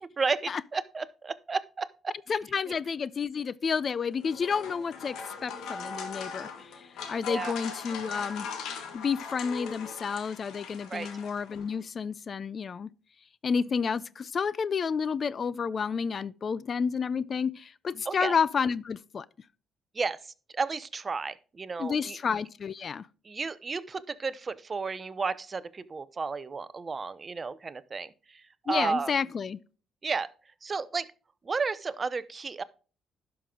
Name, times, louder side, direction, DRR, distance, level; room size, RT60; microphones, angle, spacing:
voice 1, 0.0-2.1 7.3-7.5 10.9-11.1 18.1-18.3 19.9-20.2 20.5-22.2 23.2-29.1 30.0-30.3 30.6-31.1 31.4-32.6, right 4 dB, 35° right, 0.6 m, -32 dB
voice 2, 2.3-8.5 8.9-12.9 13.4-19.3 21.8-23.1 28.7-29.6, left 6 dB, 45° left, 0.4 m, -30 dB
sound 1, 4.1-11.7, left 5 dB, 85° left, 1.6 m, -40 dB
11.0 x 5.9 x 3.6 m
cardioid pair, 90°, 0 cm